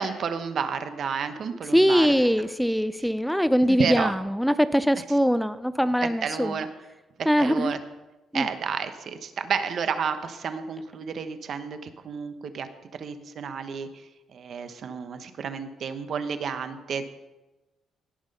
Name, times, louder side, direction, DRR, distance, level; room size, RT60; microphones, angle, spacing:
voice 1, 0.0-2.3 3.7-4.1 5.0-5.1 6.0-6.7 7.2-7.8 8.3-12.7 13.0-13.9 14.3-17.1, right 6 dB, 60° right, 10 dB, 1.0 m, -31 dB
voice 2, 1.7-6.5 7.3-7.7 8.3-8.5, equal, ahead, 14 dB, 0.4 m, -22 dB
17.5 x 6.1 x 5.5 m, 1.1 s
cardioid pair, 90°, 0 cm